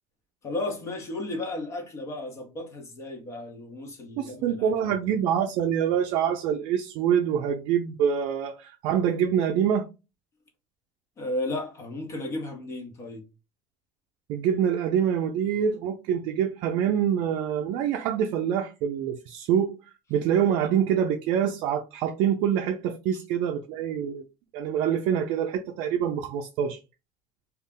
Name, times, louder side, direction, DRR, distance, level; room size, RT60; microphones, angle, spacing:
voice 1, 0.4-4.9 11.2-13.2, left 2 dB, 35° left, 0.7 m, -34 dB
voice 2, 4.2-9.9 14.3-19.7 20.1-24.2 24.5-26.8, right 8 dB, 70° right, 0.4 m, -25 dB
2.3 x 2.0 x 3.5 m
cardioid pair, 140°, 8 cm